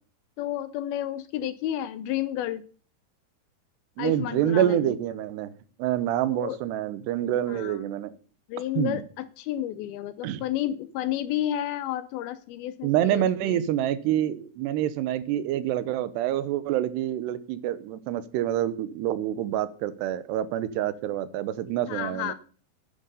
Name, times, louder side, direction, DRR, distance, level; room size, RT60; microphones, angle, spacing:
voice 1, 0.4-2.6 4.0-5.0 6.3-6.6 7.5-7.8 8.5-13.7 21.9-22.3, left 12 dB, 80° left, 2.4 m, -31 dB
voice 2, 4.0-5.5 5.8-8.1 8.8-9.0 10.2-10.4 12.8-22.3, right 11 dB, 85° right, 3.0 m, -27 dB
10.0 x 9.7 x 6.9 m
omnidirectional pair, 4.7 m